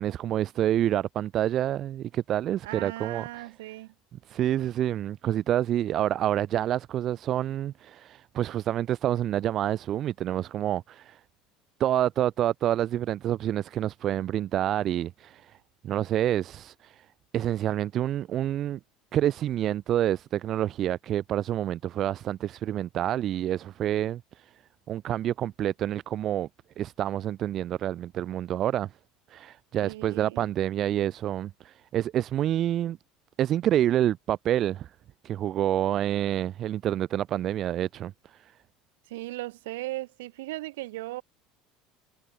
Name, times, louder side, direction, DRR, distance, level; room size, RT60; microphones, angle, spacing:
voice 1, 0.0-3.5 4.3-11.2 11.8-15.6 15.8-17.1 17.3-18.8 19.1-24.5 24.9-26.5 26.8-28.9 29.3-33.0 33.4-34.9 35.2-38.5, right 12 dB, 45° right, 0.5 m, -28 dB
voice 2, 2.6-3.9 29.8-30.5 39.1-41.2, right 19 dB, 65° right, 2.9 m, -37 dB
figure-of-eight pair, 65°, 0 cm